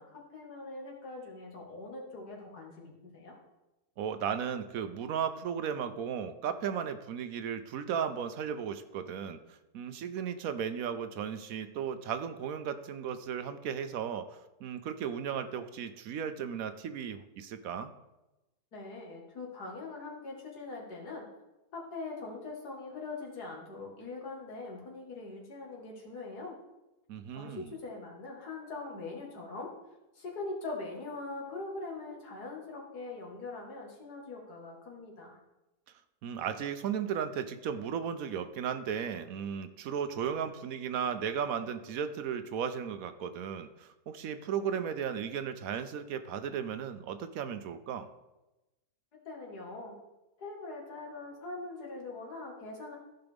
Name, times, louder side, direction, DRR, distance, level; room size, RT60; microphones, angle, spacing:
voice 1, 0.0-3.4 18.7-21.3 21.7-26.6 27.3-29.7 30.1-35.4 49.3-50.0 50.4-53.0, left 3 dB, 85° left, 0 dB, 2.3 m, -42 dB
voice 2, 4.0-17.9 27.1-27.7 36.2-48.1, right 7 dB, 70° right, 10 dB, 1.0 m, -35 dB
14.5 x 5.7 x 3.5 m, 1.0 s
omnidirectional pair, 1.7 m